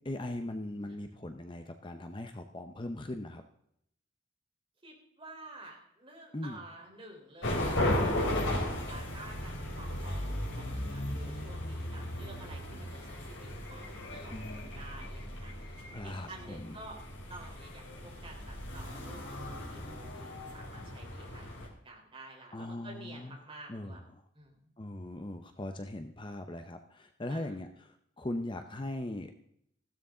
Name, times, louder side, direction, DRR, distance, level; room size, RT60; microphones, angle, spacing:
voice 1, 0.0-3.4 6.3-6.6 14.3-14.8 15.9-16.8 22.5-23.4 23.7-24.2 24.8-29.4, left 1 dB, 25° left, 7 dB, 0.7 m, -40 dB
voice 2, 4.8-17.0 17.3-21.5 21.8-24.0 24.3-24.7 27.3-27.5, right 2 dB, 25° right, -1 dB, 4.0 m, -51 dB
sound 1, 7.4-21.7, left 1 dB, 80° left, 4.0 m, -36 dB
15.5 x 12.5 x 3.8 m, 0.73 s
head